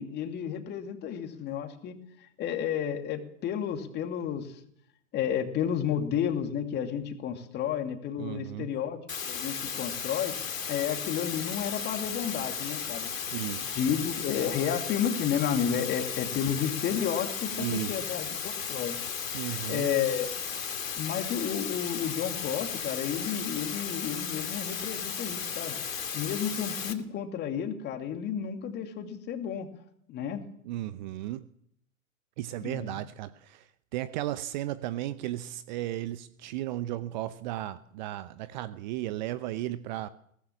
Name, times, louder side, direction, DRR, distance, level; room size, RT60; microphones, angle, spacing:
voice 1, 0.0-4.6 5.1-9.0 9.2-13.1 13.6-19.0 19.4-20.3 21.0-25.8 26.1-29.7 30.1-30.4 32.6-33.0, left 8 dB, 25° left, 6 dB, 2.5 m, -32 dB
voice 2, 8.2-8.7 13.3-13.8 17.6-18.1 19.3-19.9 30.6-31.4 32.4-40.1, right 14 dB, 35° right, 15 dB, 0.8 m, -35 dB
sound 1, 9.1-26.9, left 7 dB, 70° left, 2.7 m, -35 dB
22.0 x 17.5 x 7.3 m, 0.69 s
figure-of-eight pair, 110°, 42 cm